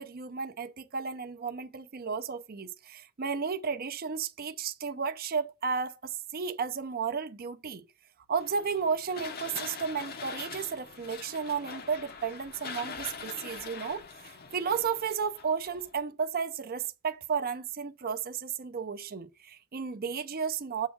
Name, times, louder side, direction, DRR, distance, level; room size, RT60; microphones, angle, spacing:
voice 1, 0.0-7.8 8.3-20.9, right 6 dB, 40° right, 0.6 m, -33 dB
sound 1, 8.4-16.0, left 5 dB, 45° left, 0.8 m, -43 dB
7.4 x 3.5 x 6.0 m
head